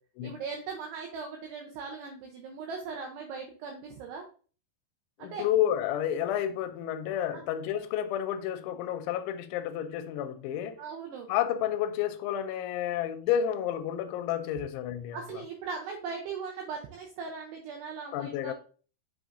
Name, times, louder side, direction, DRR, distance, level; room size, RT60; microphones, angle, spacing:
voice 1, 0.2-4.2 5.2-5.4 7.3-7.5 10.8-11.3 15.1-18.5, right 5 dB, 75° right, 2.6 m, -39 dB
voice 2, 5.2-10.8 11.3-15.4 18.1-18.5, left 10 dB, 90° left, 3.0 m, -30 dB
6.5 x 5.9 x 2.6 m
omnidirectional pair, 5.3 m